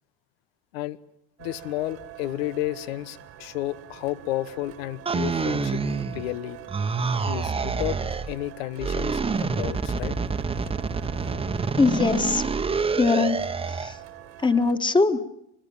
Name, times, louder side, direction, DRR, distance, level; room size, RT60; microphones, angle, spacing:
voice 1, 1.4-5.8 6.1-6.6 7.2-8.0 8.3-10.2, left 15 dB, 85° left, 15 dB, 1.1 m, -32 dB
sound 1, 1.4-14.7, right 12 dB, 55° right, 2.0 m, -45 dB
sound 2, 5.1-6.4 6.7-8.3 8.8-14.0, right 4 dB, 20° right, 1.1 m, -27 dB
voice 2, 11.8-12.4 12.9-13.4 13.7-14.0 14.4-15.2, left 4 dB, 15° left, 9 dB, 1.7 m, -21 dB
24.0 x 21.0 x 7.2 m, 0.79 s
supercardioid pair, 105°, 30 cm